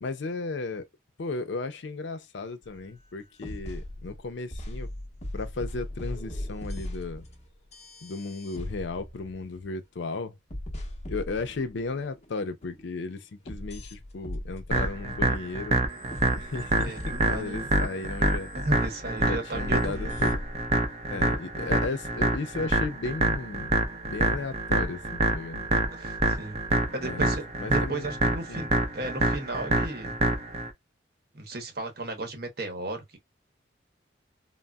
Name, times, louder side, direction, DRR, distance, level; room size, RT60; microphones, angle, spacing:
voice 1, 0.0-0.9 1.2-4.9 5.3-7.3 8.0-10.3 11.1-15.9 16.3-18.5 19.2-20.4 21.1-23.8 24.1-25.0 25.3-25.7 26.8-28.1 28.5-28.7, left 3 dB, 70° left, 0.5 m, -35 dB
sound 1, 2.6-2.8 3.4-10.1 10.5-12.3 12.6-13.0 13.5-15.3 15.9-18.7 19.5-20.8, left 1 dB, 35° left, 0.8 m, -39 dB
sound 2, 14.7-30.7, right 2 dB, 35° right, 0.6 m, -26 dB
voice 2, 16.8-17.7 18.5-20.3 25.7-26.6 26.9-30.1 31.3-33.2, right 2 dB, 55° right, 0.9 m, -35 dB
3.8 x 2.0 x 2.2 m
head